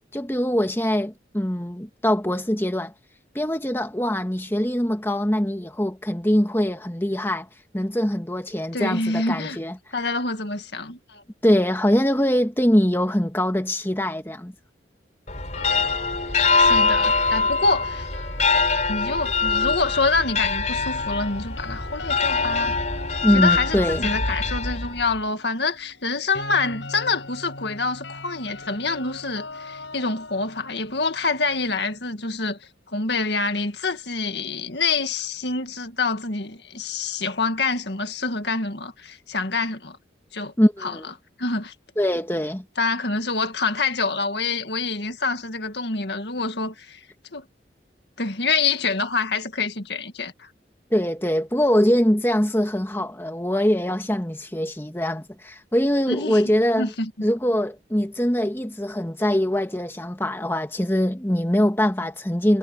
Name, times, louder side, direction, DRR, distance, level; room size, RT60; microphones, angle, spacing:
voice 1, 0.1-2.9 3.3-7.5 7.7-9.8 11.4-14.5 23.2-24.1 40.6-41.1 42.0-42.6 50.9-56.9 57.2-62.6, equal, 10° left, 1.4 m, -23 dB
voice 2, 8.7-9.6 9.9-11.2 16.6-18.1 18.9-22.7 23.3-32.6 32.9-40.0 40.3-40.5 40.8-41.0 41.4-41.7 42.8-47.0 47.3-47.4 48.2-50.5 56.1-56.4 56.8-57.1, left 3 dB, 65° left, 2.0 m, -26 dB
sound 1, 15.3-25.2, left 4 dB, 40° left, 4.9 m, -23 dB
sound 2, 15.4-19.5 20.8-32.6, left 3 dB, 85° left, 8.0 m, -40 dB
head